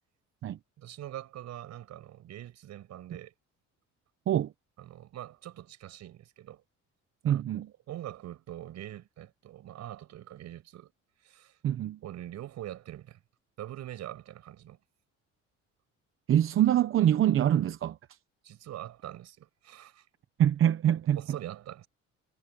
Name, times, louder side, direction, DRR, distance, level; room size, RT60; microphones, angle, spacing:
voice 1, 0.8-3.3 4.8-6.6 7.2-7.4 7.9-10.9 11.2-11.6 12.0-13.2 13.6-14.8 18.4-20.1 21.1-21.9, right 12 dB, 65° right, 5.9 m, -43 dB
voice 2, 7.2-7.7 11.6-12.0 16.3-18.0 20.4-21.2, right 11 dB, 45° right, 0.8 m, -24 dB
cardioid pair, 155°, 29 cm